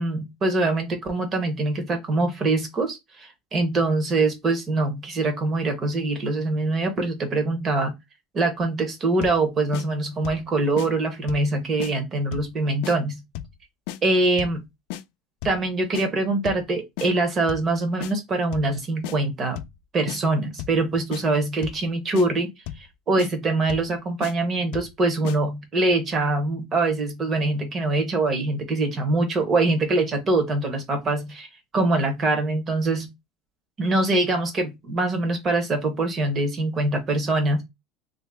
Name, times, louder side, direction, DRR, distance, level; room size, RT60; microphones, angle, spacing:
voice 1, 0.0-7.9 8.3-13.2 14.0-14.6 15.4-19.6 19.9-22.5 22.8-31.5 31.7-33.1 33.8-37.6, right 2 dB, 25° right, 0.9 m, -24 dB
sound 1, 9.2-9.4 9.7-9.9 10.2-10.5 10.8-10.9 11.3-11.5 11.8-11.9 12.3-12.5 12.8-13.0 13.3-13.6 13.9-14.0 14.4-14.6 14.9-15.0 15.4-15.6 15.9-16.1 16.4-16.7 17.0-17.1 17.5-17.7 18.0-18.1 18.5-18.7 19.0-19.2 19.6-19.8 20.1-20.2 20.6-20.8 21.1-21.2 21.6-21.8 22.1-22.3 22.7-22.9 23.2-23.3 23.7-23.9 24.2-24.3 24.7-24.9 25.2-25.4, left 13 dB, 70° left, 0.4 m, -34 dB
3.1 x 2.6 x 3.3 m
cardioid pair, 165°, 0 cm